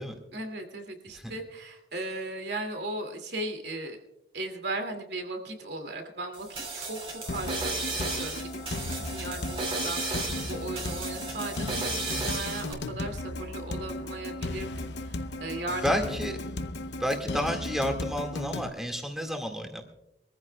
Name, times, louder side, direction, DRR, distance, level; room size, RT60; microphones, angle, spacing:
voice 1, 0.3-4.0 4.3-16.1, right 2 dB, 70° right, 5 dB, 2.5 m, -37 dB
sound 1, 6.3-12.7, right 3 dB, 30° right, 2.6 m, -34 dB
sound 2, 7.3-18.7, left 2 dB, 80° left, 0.8 m, -35 dB
voice 2, 15.8-16.4 17.0-19.8, equal, ahead, 4 dB, 2.0 m, -30 dB
24.5 x 15.0 x 2.3 m, 0.87 s
head